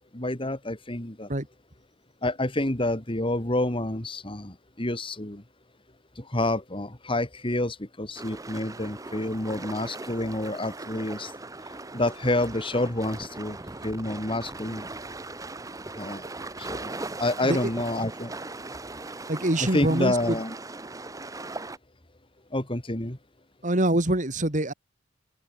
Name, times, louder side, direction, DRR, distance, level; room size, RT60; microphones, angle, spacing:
voice 1, 0.1-1.3 2.2-5.4 6.2-11.3 11.9-13.6 13.8-14.9 16.0-16.2 16.6-16.9 17.2-18.3 19.6-20.5 22.5-23.2, left 1 dB, 25° left, 2.7 m, -28 dB
sound 1, 8.1-21.8, right 2 dB, 15° right, 0.9 m, -39 dB
voice 2, 19.3-20.4 23.6-24.7, right 1 dB, 40° right, 2.6 m, -25 dB
open air
head